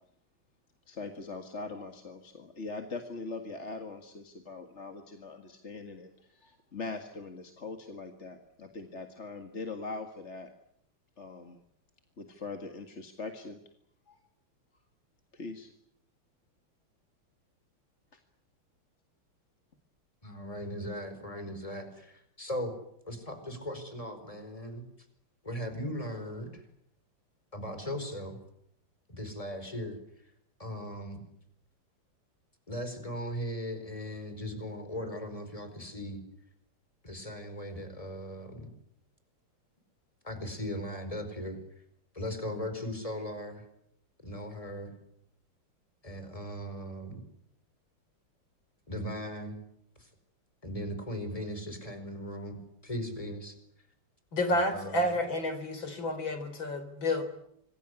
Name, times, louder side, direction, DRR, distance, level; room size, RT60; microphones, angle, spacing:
voice 1, 0.9-10.5 11.2-11.6 12.2-13.6 14.1-14.2 15.3-15.7, left 3 dB, 30° left, 5 dB, 2.1 m, -41 dB
voice 2, 20.2-22.7 23.0-24.9 25.4-26.6 27.5-28.4 29.1-30.0 30.6-31.2 32.7-36.2 37.0-38.7 40.2-41.6 42.1-43.6 44.2-44.9 46.0-47.2 48.9-49.6 50.0-50.1 50.6-53.5 54.5-55.1, equal, 15° left, 8 dB, 5.0 m, -38 dB
voice 3, 54.3-57.2, left 1 dB, 60° left, 9 dB, 4.5 m, -30 dB
27.0 x 21.5 x 9.7 m, 0.74 s
omnidirectional pair, 2.4 m